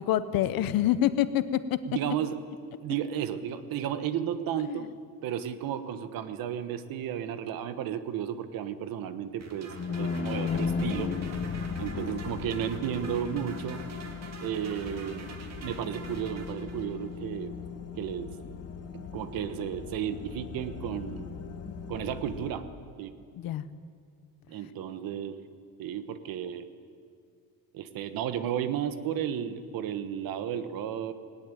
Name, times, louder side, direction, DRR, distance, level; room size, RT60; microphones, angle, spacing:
voice 1, 0.0-1.8 4.6-4.9 23.4-23.7, left 12 dB, 65° left, 13 dB, 1.0 m, -26 dB
voice 2, 1.9-2.4 2.8-4.9 5.2-11.1 11.8-13.8 14.4-15.3 15.6-17.6 17.9-18.3 18.9-21.4 21.9-22.7 23.0-23.2 24.5-25.4 25.8-26.7 27.7-31.1, right 9 dB, 65° right, 11 dB, 1.4 m, -33 dB
sound 1, 9.4-17.1, right 4 dB, 45° right, 2.4 m, -46 dB
sound 2, 9.6-12.6, left 5 dB, 25° left, 0.9 m, -32 dB
sound 3, 10.5-22.5, left 6 dB, 45° left, 1.7 m, -41 dB
19.0 x 18.0 x 9.2 m, 2.2 s
cardioid pair, 160°, 37 cm